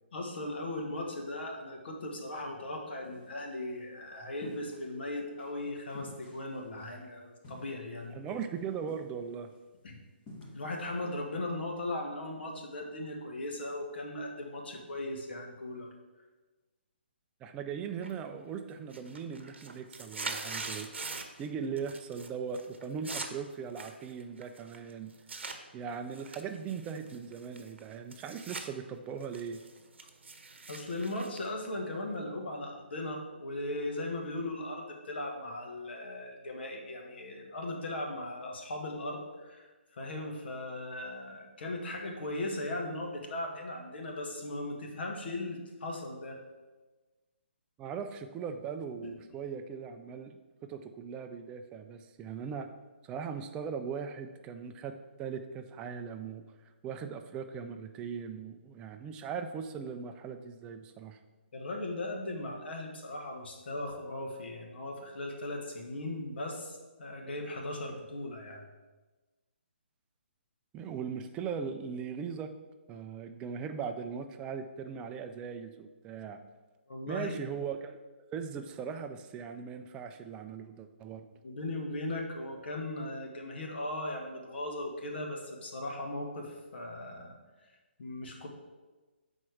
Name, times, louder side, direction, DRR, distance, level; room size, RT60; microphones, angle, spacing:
voice 1, 0.1-8.2 9.8-10.0 10.5-15.9 30.7-46.4 49.0-49.1 61.5-68.6 76.9-77.3 81.4-87.4 88.0-88.5, left 1 dB, 60° left, 1 dB, 1.3 m, -38 dB
sound 1, 3.0-3.4 4.4-4.9 5.4-5.5 5.9-6.9 7.4-8.1 8.4-8.6 8.9-9.6 10.3-10.8, left 1 dB, 25° left, 1.5 m, -51 dB
voice 2, 8.1-9.5 17.4-20.9 21.4-25.1 25.7-29.6 47.8-52.7 53.0-56.4 56.8-61.2 70.7-72.5 72.9-76.4 77.1-78.0 78.3-81.3, right 6 dB, 15° right, 7 dB, 0.4 m, -39 dB
sound 2, 18.0-18.4 18.8-21.5 21.8-22.3 22.5-25.6 26.1-28.7 29.0-32.2, right 4 dB, 75° right, 0.8 m, -43 dB
6.1 x 4.4 x 4.8 m, 1.3 s
hypercardioid pair, 145°, 6 cm